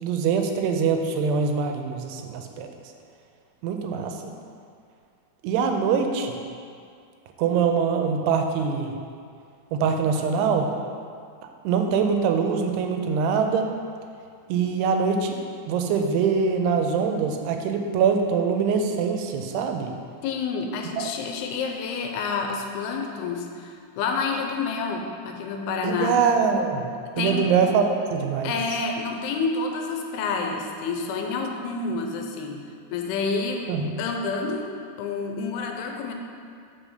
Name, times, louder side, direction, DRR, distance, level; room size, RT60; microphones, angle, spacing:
voice 1, 0.0-2.7 3.6-4.1 5.4-6.4 7.4-8.9 9.7-10.7 11.6-13.7 14.5-15.3 15.7-19.9 21.0-21.1 25.8-26.9 27.2-28.5 33.7-33.9, right 6 dB, 90° right, 4 dB, 2.7 m, -23 dB
voice 2, 20.2-26.2 27.2-27.6 28.4-32.6 32.9-33.7 34.0-34.7 35.0-36.1, left 4 dB, 85° left, 2 dB, 2.5 m, -28 dB
5.8 x 4.9 x 6.4 m, 2.3 s
omnidirectional pair, 4.6 m